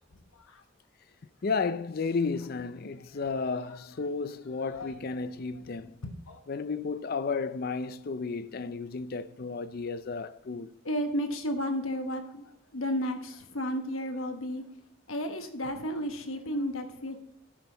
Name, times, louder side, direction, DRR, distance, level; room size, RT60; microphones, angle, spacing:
voice 1, 1.4-6.0 6.5-10.7, left 4 dB, 45° left, 0.5 m, -33 dB
voice 2, 6.0-6.4 10.8-12.4 12.7-14.6 15.1-17.2, equal, 85° left, 1.2 m, -33 dB
13.5 x 5.7 x 4.0 m
head